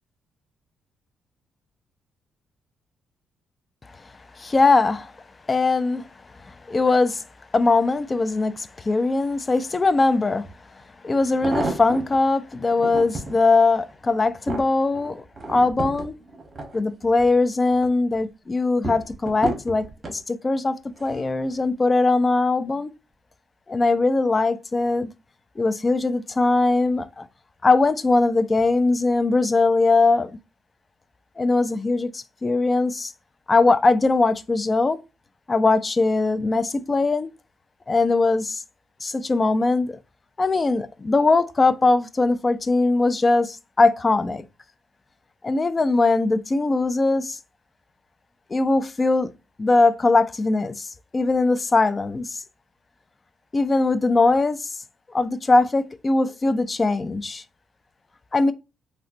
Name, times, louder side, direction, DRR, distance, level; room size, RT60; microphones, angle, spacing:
voice 1, 4.4-5.1 5.5-6.1 6.5-7.2 7.5-10.4 11.0-16.1 16.7-22.9 23.7-25.1 25.6-27.3 27.6-30.3 31.4-33.1 33.5-35.0 35.5-37.3 37.9-38.6 39.0-40.0 40.4-44.4 45.4-47.4 48.5-49.3 49.6-52.4 53.5-54.8 55.1-57.4 58.3-58.5, left 3 dB, 30° left, 0.3 m, -21 dB
sound 1, 10.4-10.5 11.2-12.2 12.7-13.4 13.9-17.3 17.7-18.2 18.8-20.2 21.0-21.3 21.6-21.7, right 2 dB, 30° right, 0.8 m, -32 dB
3.7 x 2.1 x 2.5 m
cardioid pair, 90°, 0 cm